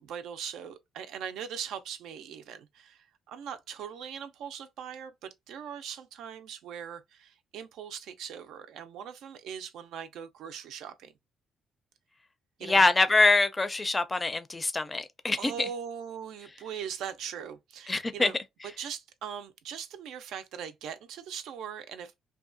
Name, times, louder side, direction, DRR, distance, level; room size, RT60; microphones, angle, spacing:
voice 1, 0.0-11.1 12.6-12.9 15.4-18.4 18.8-22.2, right 8 dB, 85° right, 0.4 m, -40 dB
voice 2, 12.6-15.5 17.9-18.3, left 3 dB, 20° left, 0.4 m, -24 dB
2.7 x 2.3 x 2.5 m
cardioid pair, 90°, 0 cm